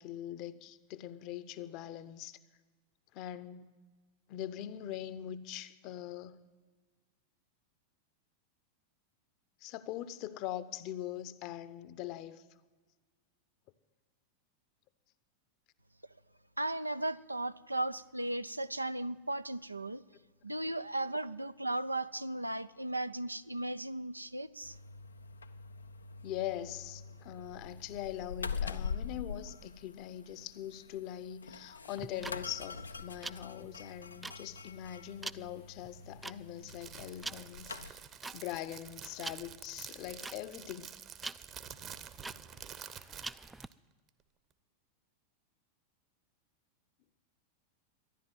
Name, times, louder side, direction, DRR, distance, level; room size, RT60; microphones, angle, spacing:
voice 1, 0.0-2.4 3.1-3.7 4.3-6.4 9.6-12.4 26.2-38.0 38.3-40.9, left 12 dB, 40° left, 0.8 m, -42 dB
voice 2, 16.6-20.0 20.4-24.8, right 1 dB, 85° right, 0.4 m, -36 dB
sound 1, 24.6-37.9, left 5 dB, 75° left, 0.5 m, -44 dB
sound 2, 31.9-43.7, right 2 dB, 10° right, 0.4 m, -46 dB
Crackle, 36.6-43.7, right 8 dB, 30° right, 0.9 m, -49 dB
13.0 x 11.0 x 9.3 m
figure-of-eight pair, 90°, 0 cm